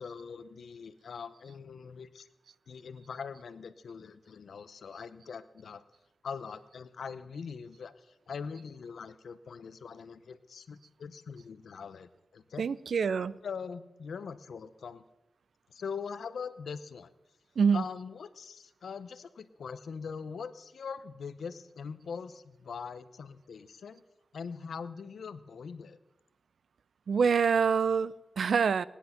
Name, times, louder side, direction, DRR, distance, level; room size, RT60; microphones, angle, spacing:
voice 1, 0.0-2.3 2.7-5.8 6.2-12.7 13.4-15.0 15.7-17.1 17.7-24.0 24.3-26.0, left 6 dB, 85° left, 0.8 m, -42 dB
voice 2, 12.6-13.3 17.6-17.8 27.1-28.9, right 6 dB, 80° right, 0.4 m, -26 dB
19.0 x 10.0 x 5.8 m
cardioid pair, 60°, 0 cm